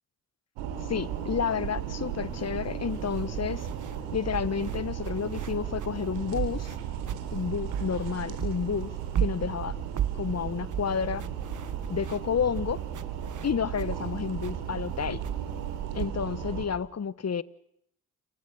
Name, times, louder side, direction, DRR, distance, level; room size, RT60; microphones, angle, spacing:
sound 1, 0.6-16.7, right 9 dB, 85° right, 4.0 m, -35 dB
voice 1, 0.9-3.7 4.1-6.7 7.3-8.9 9.2-9.8 10.1-11.2 11.9-12.8 13.4-15.2 15.9-17.4, left 7 dB, 35° left, 1.2 m, -30 dB
sound 2, 1.5-1.7 2.3-4.0 4.3-8.1 8.4-14.0 14.4-16.1, right 9 dB, 45° right, 1.0 m, -36 dB
29.0 x 28.0 x 6.4 m
hypercardioid pair, 40°, 44 cm